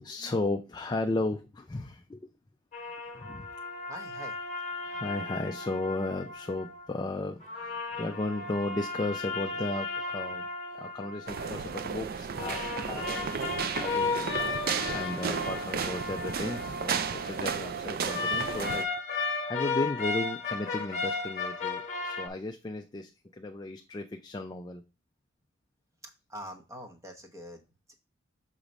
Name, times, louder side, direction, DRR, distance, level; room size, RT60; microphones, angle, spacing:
voice 1, 0.0-2.3 3.1-3.5 4.8-14.3 14.6-24.8, left 2 dB, 20° left, 4 dB, 0.3 m, -35 dB
sound 1, 2.7-6.9 7.4-11.8 12.4-17.4 18.1-22.3, left 3 dB, 35° left, 1.2 m, -35 dB
voice 2, 3.9-4.4 26.0-27.9, equal, 15° right, 3 dB, 0.9 m, -45 dB
sound 2, 11.3-18.8, right 6 dB, 50° right, 0.4 m, -33 dB
6.4 x 3.0 x 5.2 m, 0.30 s
head